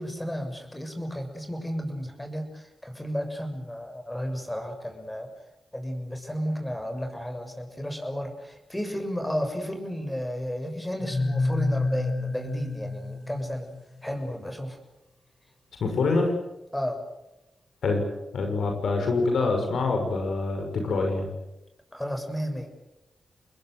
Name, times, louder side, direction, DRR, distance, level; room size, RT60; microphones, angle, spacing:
voice 1, 0.0-5.3 5.7-13.7 14.0-14.8 16.7-17.0 21.9-22.7, equal, 10° left, 6 dB, 6.9 m, -32 dB
sound 1, 11.0-13.8, left 3 dB, 35° left, 2.8 m, -28 dB
voice 2, 15.8-16.3 17.8-18.0 18.3-21.3, left 3 dB, 80° left, 3 dB, 6.1 m, -25 dB
28.0 x 21.0 x 8.0 m, 0.92 s
cardioid pair, 65°, 0 cm